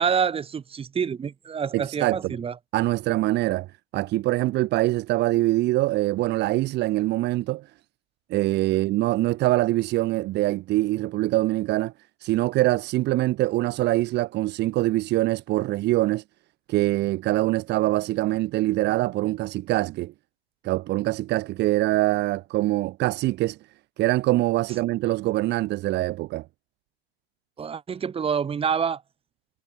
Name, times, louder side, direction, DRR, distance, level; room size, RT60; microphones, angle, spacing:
voice 1, 0.0-2.5 27.6-29.0, right 7 dB, 15° right, 6.6 m, -27 dB
voice 2, 1.7-2.4 2.7-3.7 3.9-7.7 8.3-11.9 12.2-16.2 16.7-20.1 20.6-23.6 24.0-26.4, right 17 dB, 35° right, 2.8 m, -24 dB
figure-of-eight pair, 105°, 32 cm